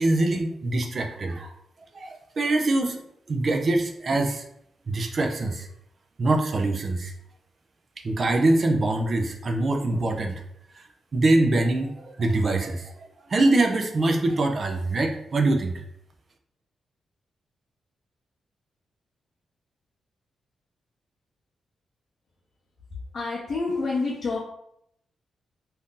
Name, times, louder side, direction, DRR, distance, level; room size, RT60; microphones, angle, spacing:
voice 1, 0.0-1.5 1.9-3.0 3.3-4.4 4.9-5.7 6.2-7.1 8.0-10.4 11.1-12.9 13.3-15.7, right 2 dB, 45° right, 4 dB, 0.5 m, -23 dB
voice 2, 23.1-24.4, left 3 dB, 50° left, -5 dB, 0.7 m, -27 dB
2.7 x 2.6 x 3.7 m, 0.74 s
cardioid pair, 90°, 0 cm